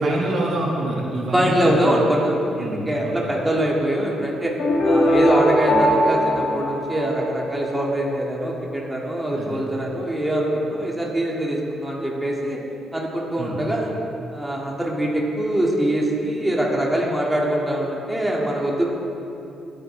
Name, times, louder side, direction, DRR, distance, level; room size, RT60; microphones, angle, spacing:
voice 1, 0.0-2.1 2.6-3.3 9.4-9.6 13.4-13.6, right 2 dB, 55° right, -3 dB, 2.1 m, -26 dB
voice 2, 1.3-4.5 4.8-12.6 12.9-13.9 14.3-18.8, right 1 dB, 10° right, -3 dB, 2.3 m, -23 dB
sound 1, 4.6-7.6, equal, 60° left, 2.4 m, -20 dB
19.5 x 9.4 x 3.5 m, 2.8 s
cardioid pair, 90°, 0 cm